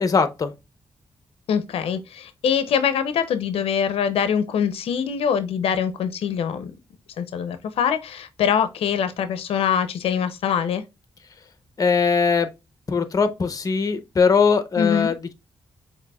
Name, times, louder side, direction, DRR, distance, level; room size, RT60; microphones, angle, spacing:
voice 1, 0.0-0.5 11.8-12.5 12.9-15.3, left 5 dB, 40° left, 0.7 m, -20 dB
voice 2, 1.5-6.7 7.2-10.8 14.8-15.1, left 7 dB, 85° left, 0.5 m, -23 dB
6.7 x 2.9 x 2.2 m
cardioid pair, 85°, 10 cm